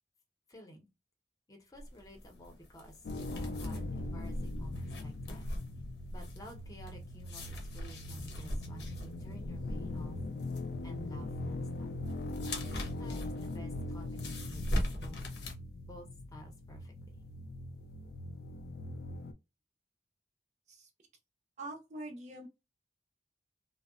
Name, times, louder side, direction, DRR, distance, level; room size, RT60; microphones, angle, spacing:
voice 1, 0.5-0.9 1.5-5.5 6.1-10.2 10.8-11.9 12.7-15.2 15.9-17.2, equal, 20° left, 0.7 m, -52 dB
sound 1, 1.8-15.5, left 1 dB, 70° left, 0.7 m, -41 dB
sound 2, 3.0-19.3, left 2 dB, 55° left, 0.3 m, -41 dB
voice 2, 21.6-22.5, right 2 dB, 40° right, 0.5 m, -44 dB
2.7 x 2.0 x 2.3 m
head